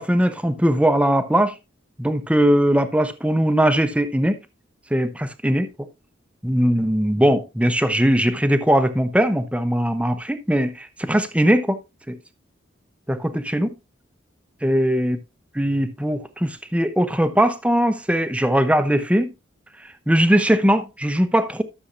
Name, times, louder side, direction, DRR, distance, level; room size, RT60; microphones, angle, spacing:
voice 1, 0.0-1.5 2.0-4.3 4.9-5.7 6.4-11.8 12.1-12.2 13.1-13.7 14.6-15.2 15.6-19.3 20.1-21.6, equal, 5° right, 0.7 m, -20 dB
13.0 x 7.1 x 2.6 m
head